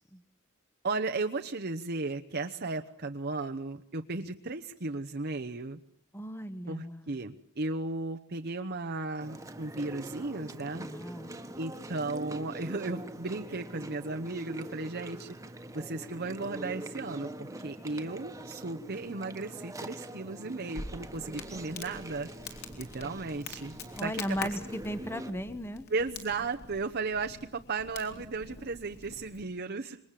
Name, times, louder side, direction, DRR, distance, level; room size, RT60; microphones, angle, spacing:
voice 1, 0.8-5.8 6.7-10.9 11.6-15.4 15.7-22.3 22.8-24.6 25.9-30.0, right 3 dB, 50° right, 5 dB, 1.0 m, -35 dB
voice 2, 6.1-7.1 10.8-11.3 24.0-25.9, equal, 10° left, 12 dB, 1.2 m, -36 dB
Chewing mastication, 9.2-25.3, right 1 dB, 15° right, 1.5 m, -44 dB
Crackle, 20.7-29.4, left 3 dB, 50° left, 4.1 m, -45 dB
27.0 x 22.5 x 7.6 m, 0.63 s
head